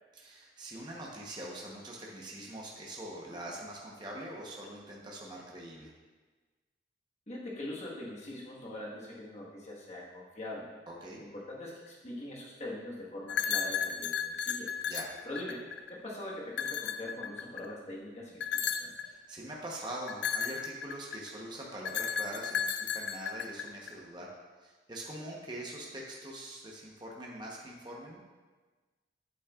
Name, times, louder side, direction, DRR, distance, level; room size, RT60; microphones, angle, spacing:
voice 1, 0.1-5.9 10.9-11.2 14.9-15.1 19.0-24.3 24.6-28.2, right 1 dB, 25° right, -3 dB, 0.9 m, -43 dB
voice 2, 7.3-10.6 11.2-14.7 15.2-15.6 15.9-18.9, left 1 dB, 40° left, -5 dB, 1.4 m, -42 dB
sound 1, 13.3-16.0 16.5-17.7 18.4-19.1 20.1-21.3 21.9-23.9, left 7 dB, 75° left, 0.4 m, -34 dB
8.5 x 8.3 x 2.4 m, 1.3 s
head